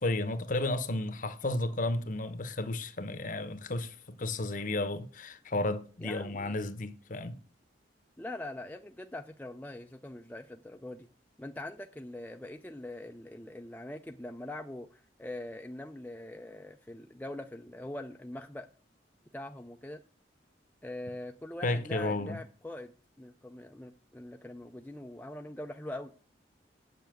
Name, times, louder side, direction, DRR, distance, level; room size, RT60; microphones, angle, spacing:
voice 1, 0.0-7.4 21.6-22.4, left 2 dB, 45° left, 1.0 m, -33 dB
voice 2, 6.0-6.6 8.2-11.1 11.4-18.7 19.3-20.0 20.8-22.9 23.2-26.1, left 1 dB, 10° left, 0.5 m, -43 dB
8.2 x 7.1 x 7.7 m
head